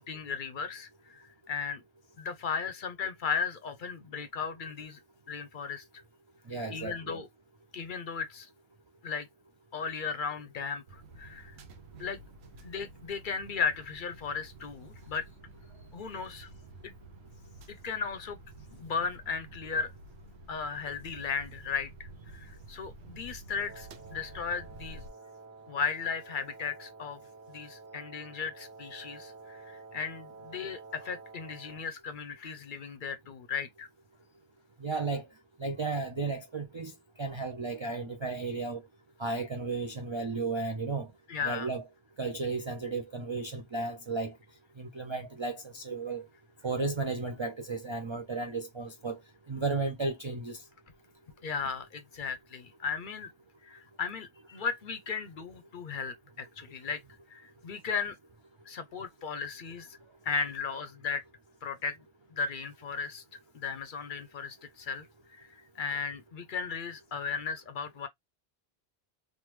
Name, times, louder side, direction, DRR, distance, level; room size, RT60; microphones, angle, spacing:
voice 1, 0.0-1.8 2.2-5.0 5.3-5.8 6.7-7.3 7.7-8.5 9.0-9.3 9.7-11.6 12.0-12.2 12.6-15.3 15.9-16.5 16.8-16.9 17.7-18.4 18.7-19.9 20.5-21.9 22.3-25.0 25.7-27.2 27.5-33.9 41.3-41.7 51.4-53.3 53.6-57.0 57.3-58.2 58.7-60.0 60.2-61.2 61.6-62.0 62.3-63.2 63.5-68.1, left 6 dB, 60° left, 0.7 m, -36 dB
voice 2, 6.5-7.2 34.8-35.3 35.6-38.8 39.2-41.1 41.4-41.8 42.2-44.3 44.8-46.3 46.6-49.2 49.5-50.6 54.5-54.6, right 3 dB, 45° right, 0.4 m, -34 dB
sound 1, 10.9-25.1, right 2 dB, 85° right, 0.9 m, -51 dB
Wind instrument woodwind instrument, 23.6-31.9, right 4 dB, 70° right, 1.3 m, -50 dB
3.3 x 2.2 x 3.0 m
omnidirectional pair, 1.1 m